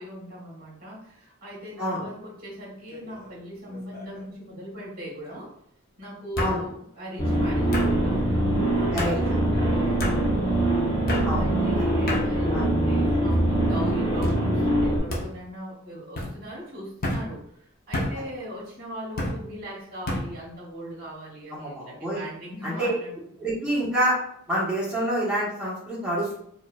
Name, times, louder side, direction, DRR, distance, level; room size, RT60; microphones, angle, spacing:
voice 1, 0.0-5.5 6.0-10.6 11.4-23.4, equal, 45° right, -3 dB, 1.5 m, -39 dB
sound 1, 2.9-3.3 3.7-4.2 5.3-5.4 6.4-6.6 7.7-7.9 9.0-9.2 10.0-10.2 11.1-11.3 12.1-12.3 13.0-13.4 14.2-14.4 15.1-15.3 16.1-16.3 17.0-17.2 17.9-18.1 19.2-19.4 20.1-20.3, left 1 dB, 45° left, 0.8 m, -29 dB
sound 2, 7.2-15.0, right 1 dB, 20° left, 1.0 m, -23 dB
voice 2, 8.9-9.3 11.2-11.5 12.5-12.7 21.5-22.2 22.6-22.9 23.4-24.2 24.5-26.4, right 1 dB, 5° right, -9 dB, 1.3 m, -27 dB
4.6 x 2.6 x 2.4 m, 0.70 s
head